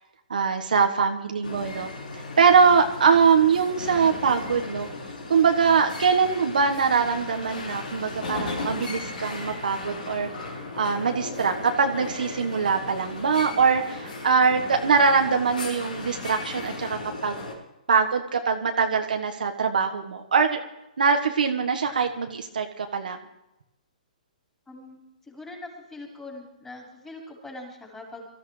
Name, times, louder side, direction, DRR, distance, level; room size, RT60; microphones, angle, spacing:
voice 1, 0.3-4.9 5.3-10.3 10.8-17.4 17.9-20.6 21.0-23.2, right 5 dB, 80° right, 4 dB, 1.4 m, -22 dB
sound 1, 1.4-17.5, left 2 dB, 80° left, 4.8 m, -36 dB
voice 2, 24.7-25.0 25.3-28.3, left 2 dB, 10° left, -2 dB, 4.6 m, -42 dB
24.0 x 14.5 x 3.3 m, 0.91 s
hypercardioid pair, 140°, 5 cm